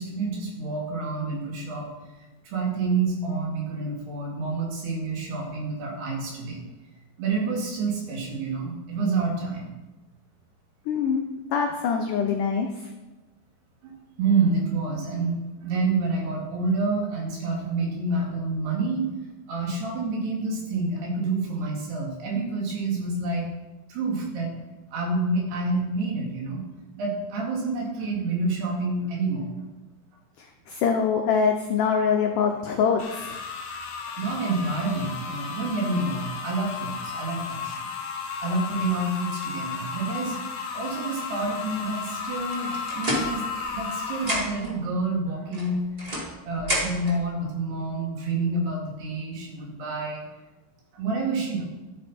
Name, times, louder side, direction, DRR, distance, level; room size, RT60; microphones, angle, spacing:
voice 1, 0.0-1.9 2.4-6.6 7.2-9.7 13.8-13.9 14.2-19.0 19.5-23.5 23.9-24.6 24.9-26.6 27.0-29.5 34.2-37.9 38.4-40.4 40.7-45.8 46.4-50.2 50.9-51.6, right 3 dB, 80° right, -2 dB, 4.5 m, -28 dB
voice 2, 10.9-11.2 11.5-12.7 30.7-33.3, left 6 dB, 80° left, 3 dB, 1.8 m, -24 dB
sound 1, 33.0-44.3, left 5 dB, 60° left, 2.8 m, -34 dB
sound 2, 42.5-43.9 44.1-44.7 45.5-47.2, equal, 20° right, 1.5 m, -30 dB
12.0 x 7.7 x 4.3 m, 1.1 s
omnidirectional pair, 4.6 m